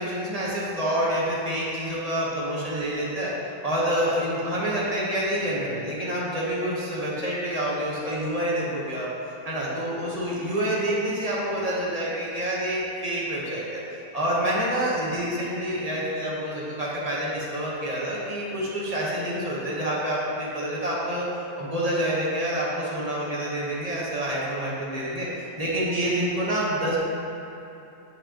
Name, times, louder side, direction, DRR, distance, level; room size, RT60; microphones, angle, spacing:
voice 1, 0.0-3.3 3.6-9.1 9.4-13.8 14.1-21.3 21.6-25.3 25.6-27.0, right 1 dB, 25° right, -6 dB, 0.9 m, -27 dB
7.7 x 5.3 x 2.9 m, 3.0 s
omnidirectional pair, 1.9 m